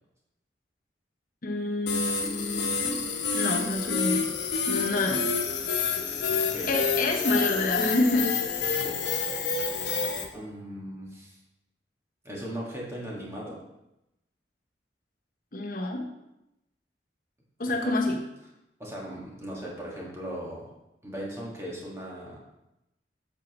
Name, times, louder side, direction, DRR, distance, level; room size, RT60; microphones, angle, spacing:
voice 1, 1.4-3.0 3.3-4.3 4.7-5.3 6.7-8.4 15.5-16.1 17.6-18.2, left 2 dB, 50° left, 1 dB, 0.9 m, -28 dB
sound 1, 1.9-10.2, left 5 dB, 80° left, 1.0 m, -28 dB
voice 2, 6.3-6.7 8.6-9.0 10.3-11.4 12.2-13.6 17.7-17.9 18.8-20.7 21.0-22.4, equal, 15° right, -4 dB, 1.7 m, -38 dB
8.2 x 7.2 x 3.0 m, 0.90 s
head